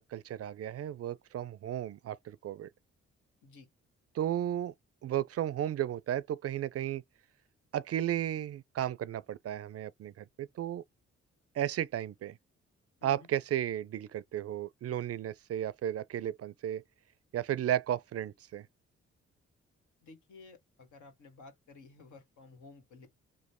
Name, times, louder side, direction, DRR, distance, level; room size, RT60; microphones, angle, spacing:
voice 1, 0.0-2.7 4.1-4.7 5.0-7.0 7.7-10.8 11.6-12.4 13.0-16.8 17.3-18.7, right 11 dB, 55° right, 0.4 m, -34 dB
voice 2, 20.0-23.1, left 3 dB, 75° left, 1.3 m, -54 dB
3.1 x 2.1 x 4.2 m
supercardioid pair, 50°, 30 cm